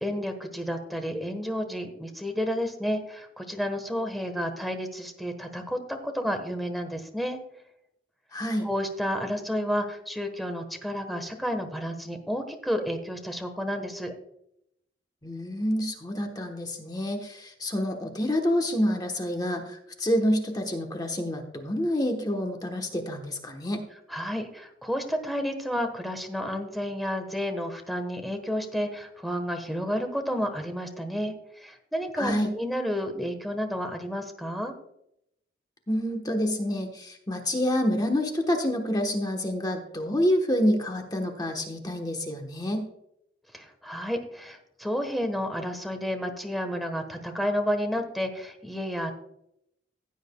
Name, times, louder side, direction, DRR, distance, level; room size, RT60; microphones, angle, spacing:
voice 1, 0.0-7.4 8.6-14.1 24.1-34.7 43.5-49.1, equal, ahead, 6 dB, 1.2 m, -31 dB
voice 2, 8.3-8.7 15.2-23.8 32.2-32.5 35.9-42.8, equal, 20° left, 3 dB, 1.1 m, -27 dB
15.5 x 9.0 x 2.3 m, 0.77 s
head